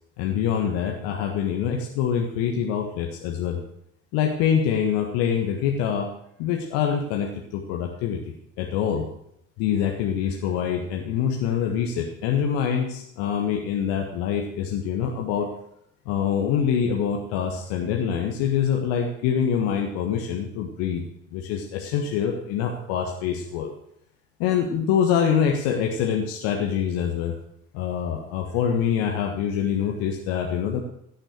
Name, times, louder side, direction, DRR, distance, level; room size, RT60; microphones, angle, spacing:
voice 1, 0.2-3.6 4.1-6.1 6.4-8.2 8.6-9.1 9.6-15.5 16.0-21.0 21.3-23.7 24.4-27.4 27.7-30.8, left 8 dB, 60° left, 2 dB, 1.6 m, -25 dB
17.0 x 6.5 x 6.7 m, 0.76 s
figure-of-eight pair, 50°, 39 cm